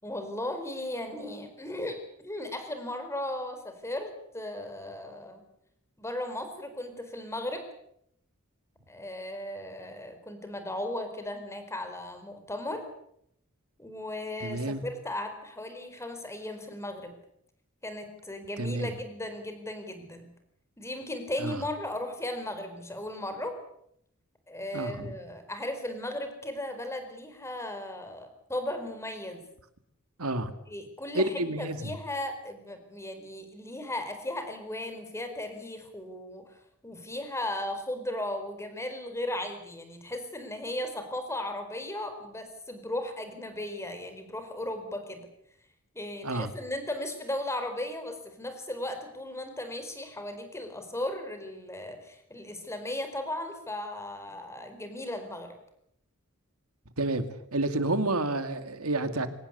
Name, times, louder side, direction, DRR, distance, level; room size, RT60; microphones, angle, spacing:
voice 1, 0.0-5.4 6.0-7.6 8.9-12.8 13.8-17.1 17.8-20.3 20.8-23.5 24.5-29.4 30.7-36.6 36.8-45.3 45.9-55.5, left 1 dB, 15° left, 8 dB, 4.4 m, -36 dB
voice 2, 14.4-14.8 18.6-18.9 21.4-21.6 24.7-25.1 30.2-30.5 31.1-31.9 46.2-46.5 57.0-57.2 57.5-59.3, right 2 dB, 85° right, 10 dB, 2.3 m, -29 dB
24.0 x 19.0 x 8.3 m, 0.73 s
head